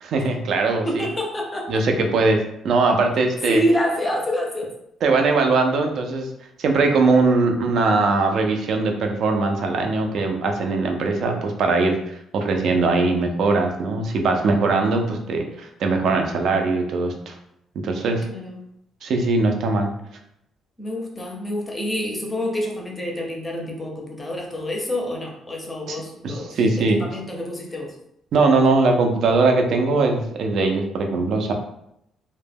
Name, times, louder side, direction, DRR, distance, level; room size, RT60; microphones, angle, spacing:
voice 1, 0.0-1.1 1.7-3.6 5.0-6.3 6.6-17.4 17.8-18.3 19.0-19.9 25.9-27.0 28.3-31.5, right 3 dB, 60° right, 3 dB, 0.4 m, -21 dB
voice 2, 0.9-1.8 3.5-4.7 18.0-18.6 20.8-27.9, equal, 15° left, 0 dB, 0.5 m, -27 dB
2.1 x 2.1 x 3.3 m, 0.77 s
cardioid pair, 150°, 0 cm